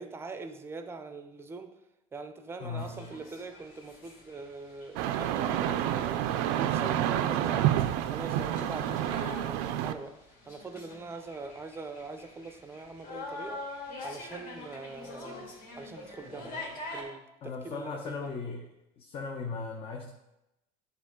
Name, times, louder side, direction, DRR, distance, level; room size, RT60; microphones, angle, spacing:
voice 1, 0.0-1.7 2.1-13.6 14.0-15.5 15.8-16.6 16.9-18.3, right 3 dB, 15° right, 8 dB, 0.6 m, -43 dB
voice 2, 2.6-3.1 17.4-18.6 19.0-20.1, left 4 dB, 35° left, 1 dB, 0.8 m, -37 dB
sound 1, 2.8-17.0, left 2 dB, 60° left, 2.6 m, -45 dB
sound 2, 5.0-9.9, right 11 dB, 75° right, 0.5 m, -29 dB
10.0 x 4.0 x 3.7 m, 0.91 s
cardioid pair, 125°, 16 cm